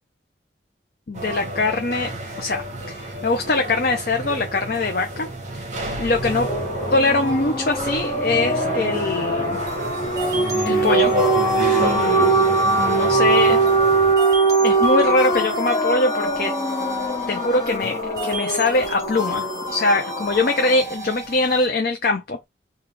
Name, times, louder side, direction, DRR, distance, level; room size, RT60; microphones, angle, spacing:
voice 1, 1.1-5.3 5.8-6.5 6.9-9.6 10.6-11.1 11.8-12.3 12.8-13.6 14.6-16.5 17.3-22.5, left 2 dB, 55° left, 0.6 m, -22 dB
sound 1, 1.1-14.1, right 1 dB, 40° right, 0.9 m, -29 dB
sound 2, 6.0-20.8, right 3 dB, 30° left, 1.0 m, -22 dB
sound 3, 9.7-21.7, equal, 20° right, 1.3 m, -34 dB
3.3 x 2.3 x 3.3 m
head